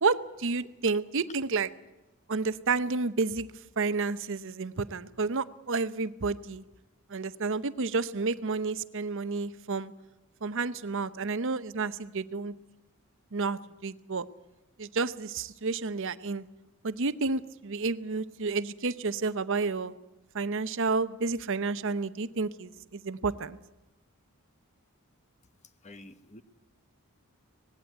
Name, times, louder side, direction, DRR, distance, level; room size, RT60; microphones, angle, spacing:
voice 1, 0.0-1.7 2.3-3.5 3.8-6.6 7.1-9.9 10.4-12.5 13.3-14.3 14.8-16.4 16.8-19.9 20.3-23.6, right 4 dB, 60° right, 0.8 m, -30 dB
voice 2, 25.8-26.4, left 1 dB, 30° left, 1.0 m, -49 dB
19.0 x 16.5 x 9.3 m
head